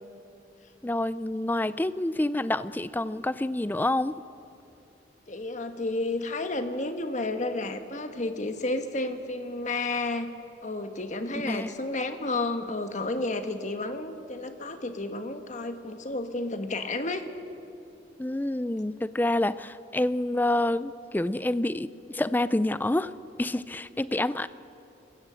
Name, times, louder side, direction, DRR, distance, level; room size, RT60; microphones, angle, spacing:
voice 1, 0.8-4.1 11.4-11.7 18.2-23.1 23.4-24.5, left 1 dB, 10° left, 15 dB, 0.4 m, -27 dB
voice 2, 5.3-10.3 10.6-17.2, left 2 dB, 40° left, 7 dB, 1.3 m, -31 dB
26.5 x 15.5 x 7.5 m, 2.7 s
head